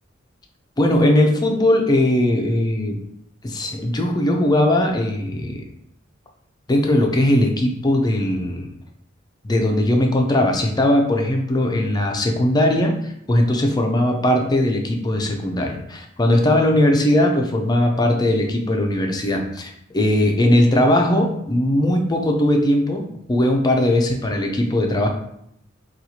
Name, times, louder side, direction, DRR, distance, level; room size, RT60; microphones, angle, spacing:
voice 1, 0.8-3.0 3.4-5.6 6.7-8.7 9.4-13.0 13.3-25.1, left 1 dB, 20° left, 2 dB, 0.5 m, -19 dB
4.2 x 2.4 x 2.8 m, 0.74 s
head